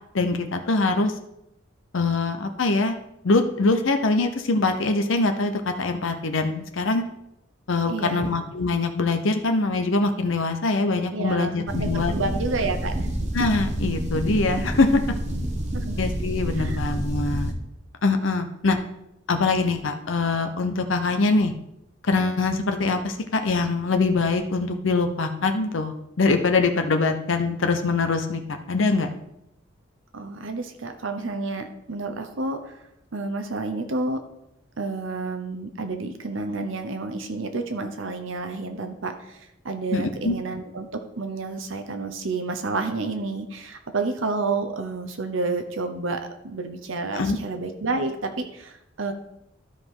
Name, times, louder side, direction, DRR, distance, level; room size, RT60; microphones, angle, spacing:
voice 1, 0.1-1.1 1.9-3.0 3.2-7.1 7.7-12.1 13.3-15.0 16.0-17.5 18.0-18.8 19.3-21.5 22.1-29.1 39.9-40.4 47.1-47.4, left 3 dB, 80° left, 6 dB, 0.7 m, -23 dB
voice 2, 7.9-8.3 11.1-13.0 15.7-16.0 16.5-16.8 30.1-32.8 33.1-34.2 34.8-40.9 41.2-49.1, right 3 dB, 80° right, 6 dB, 0.9 m, -30 dB
sound 1, 11.7-17.5, right 1 dB, 35° right, 1.0 m, -28 dB
12.5 x 4.9 x 3.8 m, 0.82 s
head